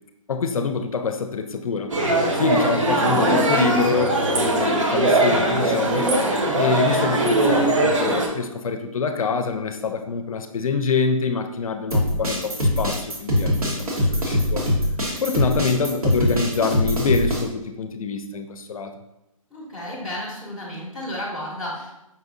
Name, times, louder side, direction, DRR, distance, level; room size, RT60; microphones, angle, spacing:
voice 1, 0.3-2.0 2.3-6.1 6.5-14.7 15.2-18.9, left 5 dB, 70° left, 7 dB, 0.5 m, -25 dB
sound 1, 1.9-8.3, right 2 dB, 60° right, 0.8 m, -20 dB
sound 2, 11.9-17.4, equal, 85° right, 1.3 m, -22 dB
voice 2, 19.5-21.9, left 1 dB, 5° right, -8 dB, 0.6 m, -32 dB
5.4 x 2.6 x 2.5 m, 0.89 s
hypercardioid pair, 155°, 18 cm